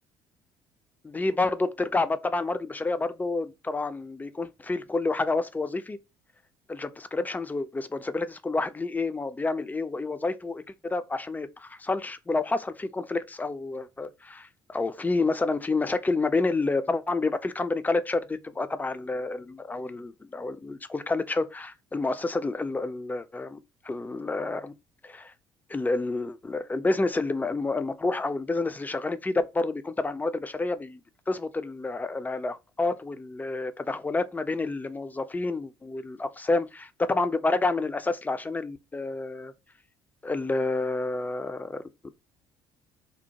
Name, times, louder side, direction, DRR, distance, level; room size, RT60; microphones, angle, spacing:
voice 1, 1.0-6.0 6.7-23.6 23.8-24.7 25.0-25.3 25.7-31.0 31.3-39.5 40.2-42.1, left 3 dB, 15° left, 0.4 m, -29 dB
2.7 x 2.0 x 2.8 m
figure-of-eight pair, 55°, 13 cm